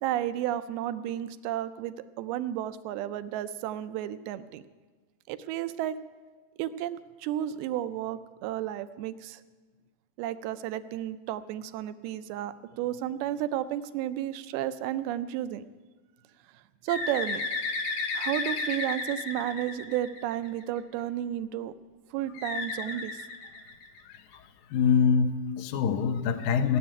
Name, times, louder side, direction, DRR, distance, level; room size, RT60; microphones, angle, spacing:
voice 1, 0.0-4.6 5.3-6.0 6.6-9.4 10.2-15.6 16.5-17.4 18.1-21.7 22.1-23.3, right 12 dB, 80° right, 12 dB, 2.4 m, -32 dB
Bird, 16.9-20.6 22.4-24.2, left 3 dB, 65° left, 2.4 m, -33 dB
voice 2, 24.0-26.8, left 6 dB, 90° left, 6 dB, 1.7 m, -25 dB
17.0 x 7.7 x 9.9 m, 1.4 s
omnidirectional pair, 4.7 m